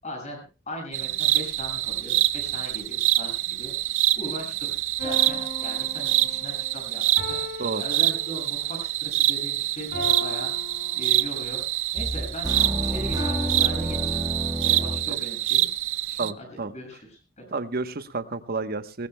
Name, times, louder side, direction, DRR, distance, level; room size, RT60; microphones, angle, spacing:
voice 1, 0.0-3.7 4.1-10.5 10.9-11.6 11.9-14.2 14.6-15.7 16.1-17.4, equal, 35° left, 3 dB, 6.8 m, -39 dB
sound 1, 0.9-16.3, right 15 dB, 65° right, 0.6 m, -26 dB
sound 2, 5.0-8.7 9.9-11.5 13.2-14.7, left 1 dB, 55° left, 6.4 m, -37 dB
sound 3, 12.0-15.2, equal, 20° right, 1.5 m, -30 dB
voice 2, 16.2-16.7 17.5-19.1, right 3 dB, 45° right, 10 dB, 1.0 m, -30 dB
20.0 x 19.5 x 2.2 m, 0.33 s
head